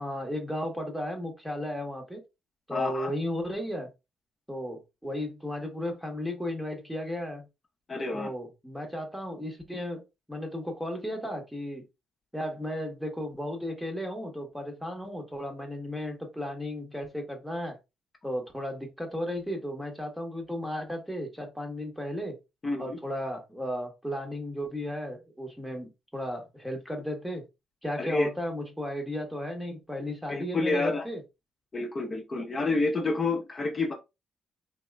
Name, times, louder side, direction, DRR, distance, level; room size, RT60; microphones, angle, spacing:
voice 1, 0.0-2.2 2.7-3.9 4.5-7.5 8.1-10.0 10.3-11.9 12.3-17.8 18.2-22.4 22.8-27.4 27.8-31.2, left 1 dB, 5° right, 1.0 m, -34 dB
voice 2, 2.7-3.1 7.9-8.3 22.6-23.0 28.0-28.3 30.3-31.0 31.7-33.9, left 3 dB, 30° left, 0.7 m, -29 dB
3.4 x 2.8 x 2.2 m
cardioid pair, 90°, 0 cm